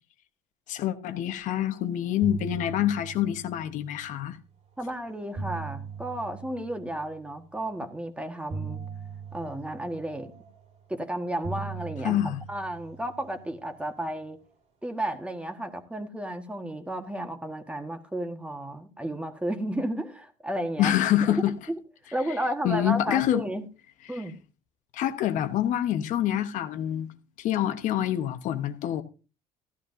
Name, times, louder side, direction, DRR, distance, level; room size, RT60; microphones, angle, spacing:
voice 1, 0.7-4.4 12.0-12.4 20.8-21.5 22.6-23.4 24.9-27.1 27.4-29.0, left 11 dB, 70° left, 1.1 m, -26 dB
sound 1, 1.6-4.4 5.1-7.5 8.5-10.9 11.4-14.0, right 5 dB, 60° right, 2.6 m, -40 dB
voice 2, 4.8-8.8 9.3-10.3 10.9-12.2 12.5-14.4 14.8-20.9 21.3-21.4 21.7-21.8 22.1-23.6 24.1-24.4, right 1 dB, 10° right, 1.5 m, -33 dB
15.0 x 11.5 x 2.6 m
cardioid pair, 95°, 13 cm